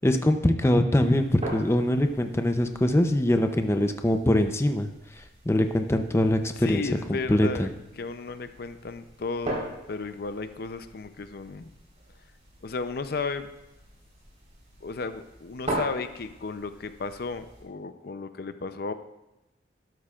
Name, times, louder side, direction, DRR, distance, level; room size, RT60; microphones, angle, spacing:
voice 1, 0.0-4.9 5.2-6.8 7.1-7.7, left 1 dB, 15° left, 6 dB, 0.6 m, -23 dB
sound 1, 0.9-17.6, right 1 dB, 40° right, 3.9 m, -41 dB
voice 2, 6.6-11.7 12.6-13.5 14.8-18.9, left 4 dB, 60° left, 10 dB, 0.5 m, -34 dB
13.0 x 12.5 x 2.4 m, 0.94 s
head